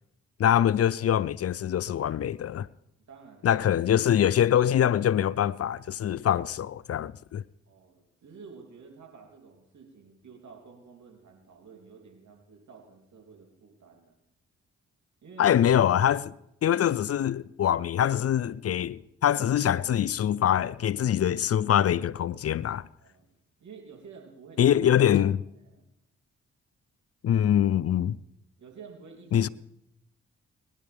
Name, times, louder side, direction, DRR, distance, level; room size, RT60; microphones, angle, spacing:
voice 1, 0.4-2.7 3.4-7.4 15.4-16.3 16.6-22.9 24.6-25.4 27.2-28.2 29.3-29.5, left 10 dB, 50° left, 0.5 m, -24 dB
voice 2, 3.1-3.6 7.7-14.1 15.2-15.5 16.8-16.9 23.0-24.8 25.1-25.8 28.6-29.5, right 5 dB, 70° right, 3.2 m, -51 dB
22.5 x 11.0 x 3.5 m
hypercardioid pair, 40°, 30 cm